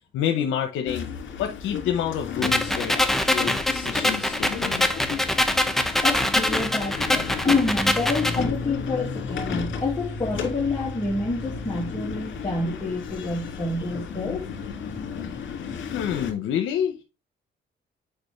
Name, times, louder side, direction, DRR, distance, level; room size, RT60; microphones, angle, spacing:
voice 1, 0.1-1.1 1.4-4.9 15.9-17.0, left 9 dB, 85° left, 0.8 m, -28 dB
sound 1, 0.9-16.3, left 5 dB, 70° left, 2.0 m, -33 dB
sound 2, 2.4-8.4, left 1 dB, ahead, 1.0 m, -24 dB
voice 2, 6.0-14.4, left 3 dB, 20° left, 1.9 m, -27 dB
6.8 x 5.2 x 3.2 m
cardioid pair, 90°, 20 cm